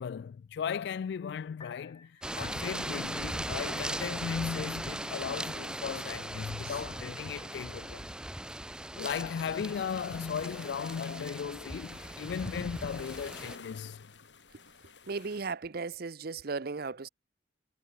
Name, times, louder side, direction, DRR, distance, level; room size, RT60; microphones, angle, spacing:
voice 1, 0.0-8.1 8.9-14.0, left 7 dB, 70° left, 0.3 m, -36 dB
Piano, 1.5-14.5, left 4 dB, 30° left, 3.6 m, -66 dB
sound 1, 2.2-13.6, right 1 dB, 5° right, 0.6 m, -39 dB
sound 2, 9.3-15.5, left 5 dB, 90° left, 3.8 m, -52 dB
voice 2, 15.0-17.1, right 4 dB, 60° right, 0.7 m, -36 dB
head